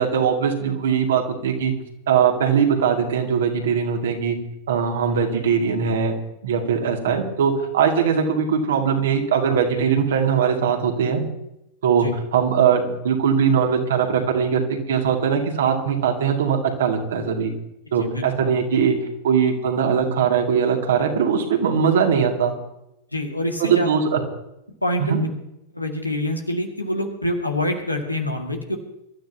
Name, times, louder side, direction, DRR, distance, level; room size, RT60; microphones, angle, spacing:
voice 1, 0.0-1.7 2.1-4.4 4.7-6.1 6.4-11.2 11.8-17.5 17.9-18.9 19.2-22.5 23.6-24.2 25.0-25.2, right 7 dB, 60° right, 2 dB, 2.5 m, -20 dB
voice 2, 18.0-18.6 23.1-24.0 24.8-25.3 25.7-28.8, left 1 dB, 85° left, 2 dB, 2.2 m, -26 dB
25.0 x 13.0 x 3.0 m, 0.85 s
figure-of-eight pair, 90°, 0 cm